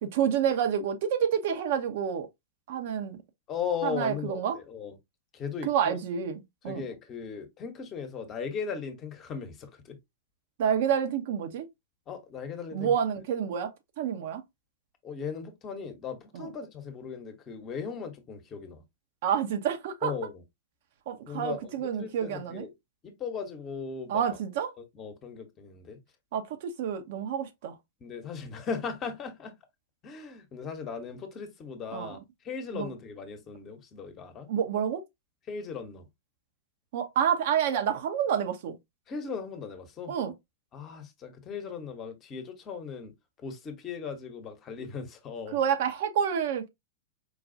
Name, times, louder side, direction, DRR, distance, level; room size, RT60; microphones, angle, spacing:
voice 1, 0.0-2.3 2.7-3.2 3.8-4.6 5.7-6.9 10.6-11.7 12.7-13.7 14.0-14.4 16.3-16.5 19.2-20.1 21.1-22.6 24.1-24.7 26.3-27.8 31.9-32.1 32.7-32.9 34.5-35.0 36.9-38.8 40.1-40.3 45.5-46.7, right 8 dB, 55° right, 0.8 m, -28 dB
voice 2, 3.5-5.0 5.3-6.0 6.6-10.0 12.1-12.9 15.0-18.8 20.0-20.4 21.3-22.7 23.0-24.2 24.8-26.0 28.0-29.5 30.0-32.2 32.4-34.5 35.5-36.0 39.1-40.1 40.7-43.1 43.4-45.6, left 6 dB, 30° left, 1.0 m, -37 dB
4.8 x 2.3 x 2.6 m
figure-of-eight pair, 100°, 0 cm